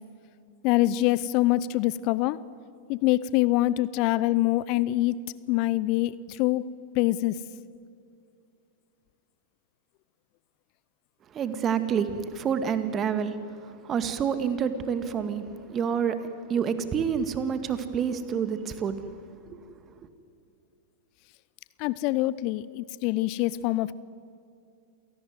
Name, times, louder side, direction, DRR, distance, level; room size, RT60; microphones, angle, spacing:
voice 1, 0.6-2.4 2.9-5.2 5.5-6.7 6.9-7.4 21.8-23.9, left 16 dB, 45° left, 19 dB, 0.6 m, -25 dB
voice 2, 11.3-19.0 19.5-19.6, right 7 dB, 30° right, 11 dB, 2.0 m, -28 dB
27.5 x 18.0 x 9.5 m, 2.4 s
figure-of-eight pair, 95°, 0 cm